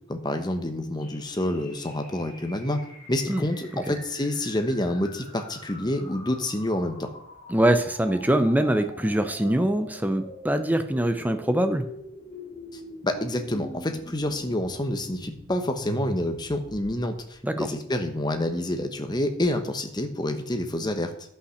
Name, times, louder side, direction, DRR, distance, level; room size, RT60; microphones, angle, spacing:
voice 1, 0.1-2.8 3.1-7.1 12.7-21.1, left 1 dB, 20° left, 6 dB, 1.0 m, -28 dB
sound 1, 1.0-17.3, equal, 35° left, 3.6 m, -44 dB
voice 2, 7.5-11.9 17.4-17.7, right 1 dB, 10° right, 8 dB, 0.6 m, -23 dB
11.0 x 5.8 x 6.5 m, 0.72 s
head